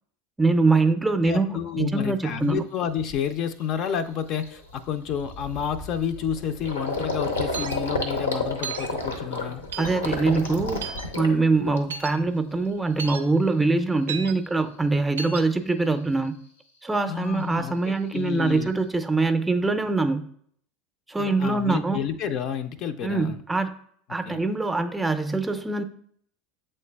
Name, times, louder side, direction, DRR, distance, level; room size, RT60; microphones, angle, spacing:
voice 1, 0.4-2.6 9.8-16.4 16.8-20.3 21.1-22.0 23.0-23.7 24.1-25.8, right 3 dB, 10° right, 8 dB, 0.5 m, -24 dB
voice 2, 1.2-9.6 17.1-18.7 21.2-23.4 24.3-24.4, left 8 dB, 50° left, 9 dB, 0.4 m, -30 dB
Gurgling, 2.5-2.6 3.1-3.3 3.7-12.2 12.5-13.2, left 2 dB, 90° left, 0.7 m, -31 dB
sound 1, 7.5-7.8 8.6-8.9 9.7-10.0 10.8-11.1 11.9-12.1 13.0-13.2 14.1-14.3 15.2-15.4, right 6 dB, 80° right, 0.4 m, -33 dB
7.6 x 3.2 x 2.2 m, 0.62 s
hypercardioid pair, 75°, 0 cm